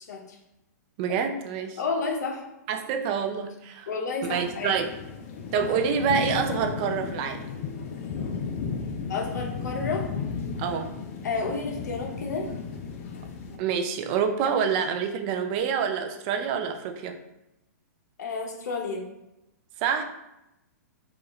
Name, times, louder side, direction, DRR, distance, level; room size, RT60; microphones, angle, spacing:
voice 1, 1.0-1.8 2.7-3.9 4.3-4.9 5.5-7.4 10.6-10.9 13.6-17.2 19.8-20.0, right 7 dB, 35° right, 6 dB, 0.4 m, -27 dB
voice 2, 1.8-2.5 3.9-4.8 9.1-10.1 11.2-12.5 14.4-14.6 18.2-19.1, left 4 dB, 75° left, 2 dB, 0.8 m, -31 dB
sound 1, 4.2-13.6, left 5 dB, 50° left, 0.5 m, -34 dB
4.7 x 2.5 x 3.1 m, 0.89 s
hypercardioid pair, 145°, 9 cm